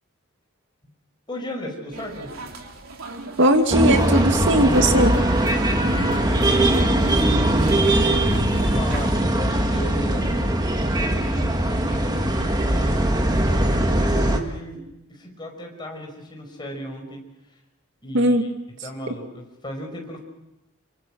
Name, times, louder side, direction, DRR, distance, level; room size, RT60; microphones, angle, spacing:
voice 1, 1.3-2.3 5.9-7.6 8.3-9.2 9.5-10.3 10.9-13.0 13.7-14.8 15.1-17.2 18.0-20.2, equal, 20° left, 1 dB, 5.7 m, -35 dB
sound 1, 1.9-9.1, right 3 dB, 85° right, 3.2 m, -38 dB
voice 2, 3.4-5.1 18.1-18.4, right 1 dB, 60° right, 5 dB, 2.4 m, -18 dB
sound 2, 3.7-14.4, right 1 dB, 20° right, 1.9 m, -20 dB
26.5 x 24.0 x 6.5 m, 0.91 s
head